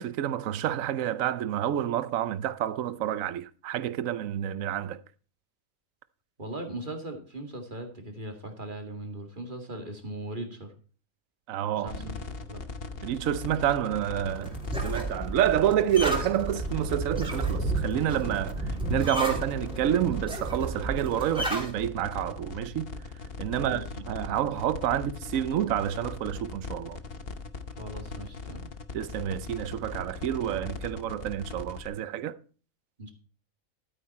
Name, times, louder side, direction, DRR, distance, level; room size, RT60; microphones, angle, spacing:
voice 1, 0.0-5.0 11.5-12.1 13.0-22.9 23.4-27.0 28.9-32.3, right 11 dB, 80° right, 1.1 m, -29 dB
voice 2, 6.4-10.7 11.8-12.2 12.5-12.6 23.5-24.0 27.8-28.7 33.0-33.1, right 1 dB, 35° right, 2.3 m, -39 dB
sound 1, 11.9-31.9, left 4 dB, 50° left, 1.2 m, -39 dB
sound 2, 14.2-21.7, right 2 dB, 5° right, 3.0 m, -32 dB
12.5 x 9.4 x 4.2 m
omnidirectional pair, 1.4 m